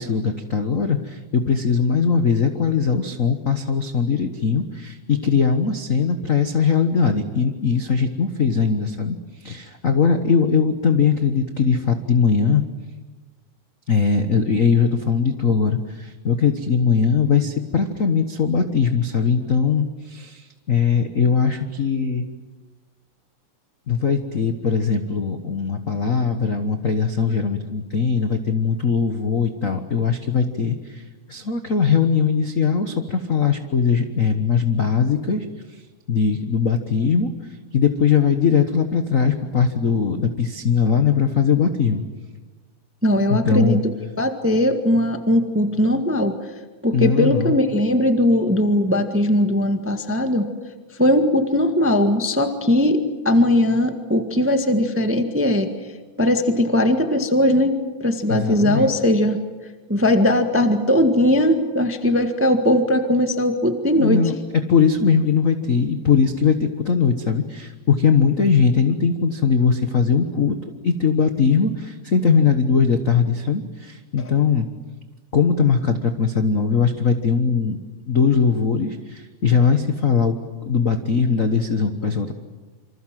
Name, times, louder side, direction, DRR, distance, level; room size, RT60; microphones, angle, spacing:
voice 1, 0.0-12.6 13.9-22.3 23.9-31.0 31.3-35.4 36.1-37.3 37.7-42.0 43.3-43.8 46.9-47.6 58.3-58.9 64.0-70.6 70.8-74.7 75.3-77.8 78.1-80.4 80.7-82.3, left 6 dB, 50° left, 7 dB, 1.0 m, -20 dB
voice 2, 43.0-43.8 44.2-46.4 46.8-50.4 51.0-55.7 56.2-57.7 58.0-59.4 59.9-64.2, left 1 dB, 10° right, 6 dB, 0.9 m, -19 dB
27.5 x 26.5 x 7.6 m, 1.3 s
omnidirectional pair, 3.3 m